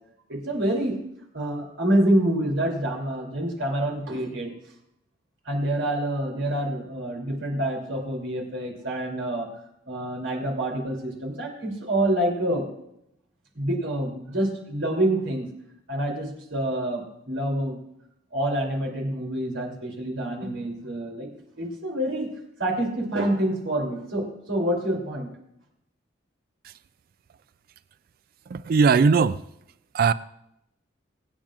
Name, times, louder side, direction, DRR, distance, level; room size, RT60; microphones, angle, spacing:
voice 1, 0.3-0.9 1.3-4.5 5.4-9.5 9.9-12.7 13.5-15.5 15.9-17.8 18.3-21.3 21.6-22.3 22.6-25.3, right 1 dB, 75° right, 3.2 m, -27 dB
voice 2, 28.5-29.4 29.9-30.1, right 5 dB, 50° right, 0.3 m, -19 dB
23.5 x 8.8 x 2.5 m
head